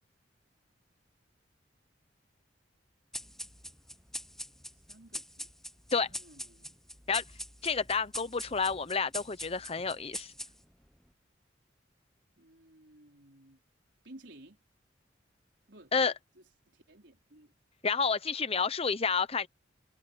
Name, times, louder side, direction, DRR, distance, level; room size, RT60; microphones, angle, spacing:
sound 1, 3.1-10.9, left 1 dB, ahead, 0.8 m, -44 dB
voice 1, 4.9-5.5 5.9-6.7 12.4-13.6 14.0-14.6 15.7-17.5, right 1 dB, 65° right, 4.8 m, -56 dB
voice 2, 7.6-10.3 15.9-16.1 17.8-19.5, left 5 dB, 30° left, 0.8 m, -30 dB
head